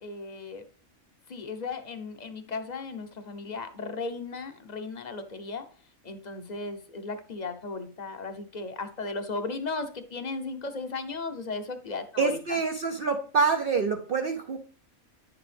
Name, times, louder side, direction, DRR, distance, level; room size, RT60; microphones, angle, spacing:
voice 1, 0.0-0.6 1.3-5.6 6.0-12.6, left 3 dB, 35° left, 8 dB, 0.9 m, -36 dB
voice 2, 12.2-14.6, right 5 dB, 50° right, 3 dB, 0.7 m, -26 dB
10.0 x 6.8 x 3.4 m, 0.41 s
omnidirectional pair, 1.4 m